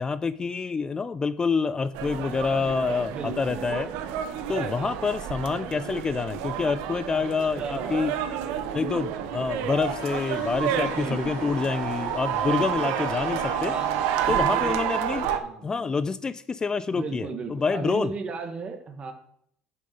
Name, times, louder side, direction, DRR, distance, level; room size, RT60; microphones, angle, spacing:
voice 1, 0.0-3.9 4.5-8.1 8.7-13.7 14.3-15.3 15.6-18.1, left 5 dB, 25° left, 15 dB, 0.3 m, -27 dB
sound 1, 1.9-15.4, right 10 dB, 85° right, 0.7 m, -30 dB
voice 2, 3.1-3.6 4.5-5.0 7.1-7.2 7.6-8.2 10.7-11.6 12.4-12.9 13.7-14.8 15.3-16.0 16.9-19.1, right 4 dB, 40° right, 6 dB, 1.5 m, -35 dB
sound 2, 9.8-13.9, left 9 dB, 85° left, 1.0 m, -40 dB
6.8 x 5.3 x 5.2 m, 0.69 s
supercardioid pair, 90°, 3 cm